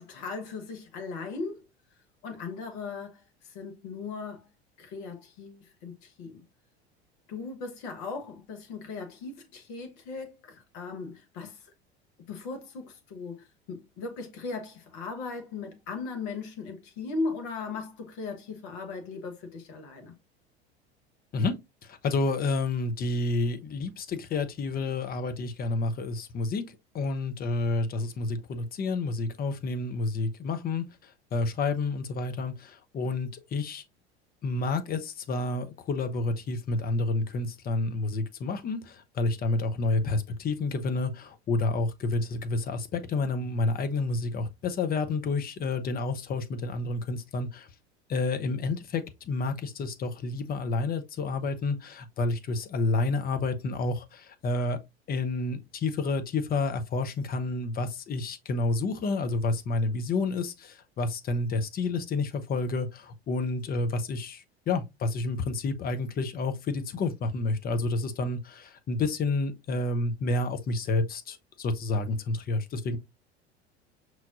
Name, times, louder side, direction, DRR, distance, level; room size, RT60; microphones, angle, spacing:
voice 1, 0.0-1.6 2.2-3.2 3.5-4.4 4.8-6.4 7.3-11.6 12.3-20.1, left 4 dB, 55° left, 1.2 m, -38 dB
voice 2, 21.9-30.9 31.3-33.8 34.4-47.7 48.1-54.8 55.1-73.0, left 3 dB, 30° left, 0.7 m, -29 dB
5.6 x 3.1 x 2.5 m
figure-of-eight pair, 80°, 32 cm